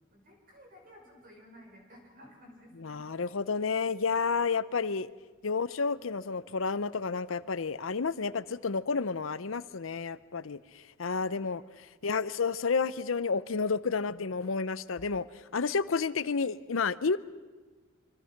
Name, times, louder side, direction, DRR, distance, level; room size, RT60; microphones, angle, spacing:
voice 1, 0.1-3.0 5.8-6.0 11.2-11.6, equal, 45° right, 2 dB, 5.4 m, -55 dB
voice 2, 2.8-5.1 5.4-11.6 12.0-17.2, left 5 dB, 90° left, 16 dB, 0.7 m, -31 dB
25.5 x 25.0 x 5.9 m, 1.3 s
head